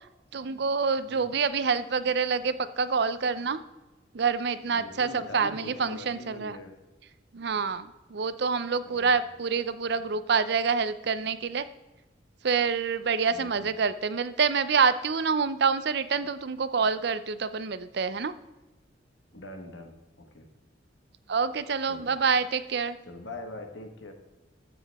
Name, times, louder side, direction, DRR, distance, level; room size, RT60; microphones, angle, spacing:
voice 1, 0.3-3.6 4.1-6.6 7.3-11.7 12.4-18.3 21.3-23.0, right 5 dB, 60° right, 14 dB, 0.6 m, -27 dB
voice 2, 4.6-6.8 8.8-9.2 13.3-13.8 19.3-20.5 21.9-22.1 23.1-24.1, left 1 dB, 90° left, 4 dB, 1.6 m, -43 dB
12.5 x 7.8 x 3.5 m, 1.1 s
head